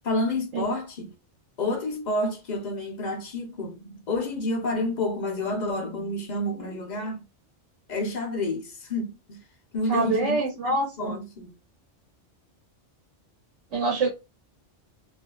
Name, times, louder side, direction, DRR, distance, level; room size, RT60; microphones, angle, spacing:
voice 1, 0.0-1.1 1.6-7.2 7.9-9.4 9.7-11.5, left 2 dB, 50° left, 0.6 m, -29 dB
voice 2, 9.9-11.1 13.7-14.1, right 3 dB, 85° right, 1.2 m, -25 dB
2.5 x 2.3 x 2.2 m
omnidirectional pair, 1.2 m